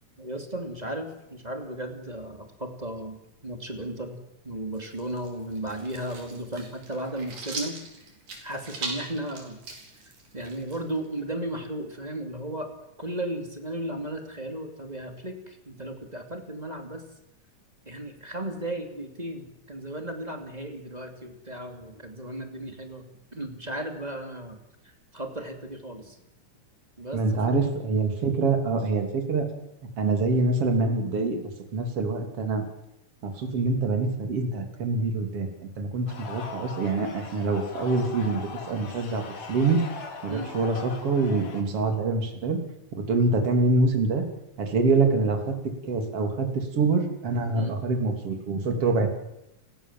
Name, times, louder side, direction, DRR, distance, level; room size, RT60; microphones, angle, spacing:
voice 1, 0.2-4.2 4.4-7.8 8.4-9.6 10.3-12.7 13.0-17.0 17.9-23.0 23.3-24.6 24.8-26.2 27.0-27.2 27.5-27.6 40.3-40.5 47.5-47.8, right 1 dB, 15° right, 5 dB, 2.6 m, -35 dB
sound 1, 4.7-11.2, right 3 dB, 70° right, 6.0 m, -40 dB
voice 2, 27.1-29.5 30.0-31.4 31.7-32.6 33.2-35.5 35.8-39.2 39.5-39.8 40.2-42.6 42.9-44.3 44.6-45.6 45.9-49.1, right 3 dB, 50° right, 4 dB, 3.9 m, -25 dB
sound 2, 36.1-41.6, left 5 dB, 80° left, 4.2 m, -40 dB
29.5 x 17.0 x 7.6 m, 0.87 s
omnidirectional pair, 3.6 m